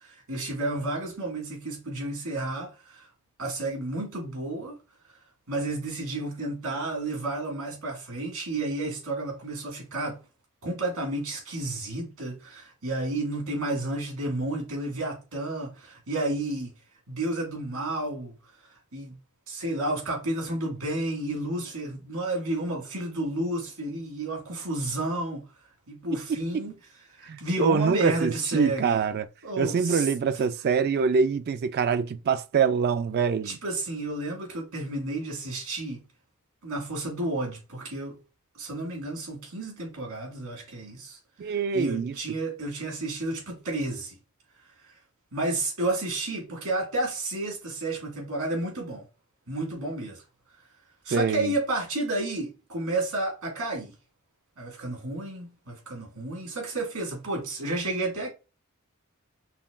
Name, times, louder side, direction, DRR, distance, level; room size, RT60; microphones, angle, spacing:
voice 1, 0.0-3.1 3.4-4.8 5.5-10.2 10.6-16.7 17.1-18.4 18.7-19.2 19.5-25.5 25.9-26.7 27.1-29.0 29.4-30.1 33.4-36.0 36.6-38.2 38.5-41.2 41.4-44.2 44.8-45.0 45.3-49.1 49.5-50.2 51.0-53.9 54.6-58.3, right 2 dB, 80° right, 1.9 m, -31 dB
voice 2, 27.3-29.3 29.6-33.6 41.4-42.1 51.1-51.5, right 6 dB, 45° right, 0.3 m, -25 dB
5.6 x 2.3 x 2.3 m
head